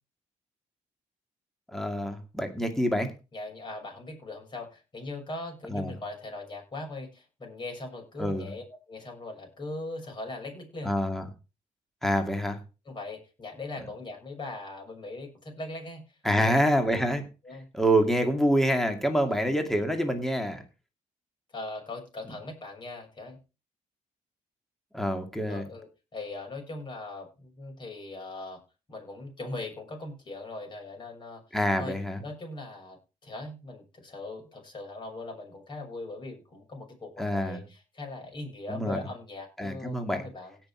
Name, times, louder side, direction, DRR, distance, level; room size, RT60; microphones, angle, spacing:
voice 1, 1.7-3.1 5.7-5.9 8.2-8.5 10.8-11.2 12.0-12.6 16.2-17.2 17.7-20.6 24.9-25.6 31.5-32.2 37.2-37.6 38.7-39.0 39.6-40.2, equal, 5° left, 4 dB, 2.3 m, -26 dB
voice 2, 3.3-11.0 12.8-16.0 16.4-16.7 17.4-17.6 19.2-19.3 21.5-23.4 25.5-28.6 28.9-31.4 31.8-40.6, left 2 dB, 35° left, 2 dB, 6.6 m, -40 dB
17.5 x 6.1 x 4.5 m, 0.30 s
cardioid pair, 110°, 13 cm